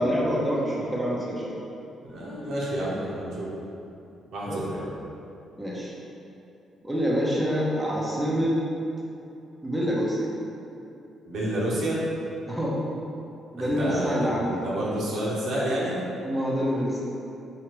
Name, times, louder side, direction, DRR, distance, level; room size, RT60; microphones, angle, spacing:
voice 1, 0.0-1.5 4.5-4.6 5.6-5.9 6.8-8.6 9.6-10.3 12.5-12.8 13.5-14.6 16.2-17.0, equal, 5° right, -6 dB, 0.8 m, -26 dB
voice 2, 2.0-3.5 4.3-4.9 11.3-12.0 13.6-14.3 14.6-16.0, right 1 dB, 70° right, -6 dB, 1.0 m, -29 dB
4.7 x 2.8 x 3.0 m, 2.8 s
cardioid pair, 90°, 0 cm